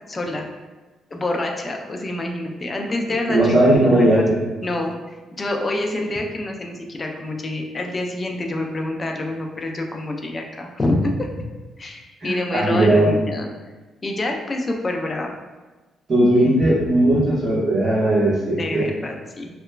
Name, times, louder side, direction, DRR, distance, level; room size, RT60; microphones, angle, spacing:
voice 1, 0.1-0.4 1.1-4.1 4.6-11.3 11.8-13.5 14.0-15.4 18.3-19.5, left 2 dB, 30° left, 2 dB, 0.4 m, -27 dB
voice 2, 3.3-4.4 12.2-13.1 16.1-18.9, right 1 dB, 50° right, -8 dB, 1.1 m, -17 dB
2.9 x 2.2 x 2.2 m, 1.2 s
cardioid pair, 90°, 0 cm